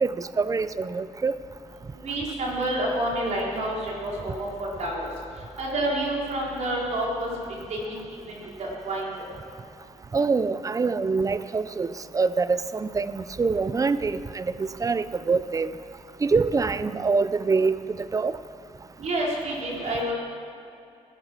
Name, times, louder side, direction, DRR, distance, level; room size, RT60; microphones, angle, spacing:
voice 1, 0.0-1.4 10.1-11.9 12.1-15.7 16.2-17.8 18.1-18.3, right 4 dB, 25° right, 14 dB, 0.6 m, -25 dB
voice 2, 2.0-5.1 5.6-7.3 7.7-9.1 19.0-20.1, right 1 dB, 70° right, -4 dB, 4.4 m, -29 dB
17.5 x 10.0 x 6.2 m, 2.6 s
cardioid pair, 90°, 12 cm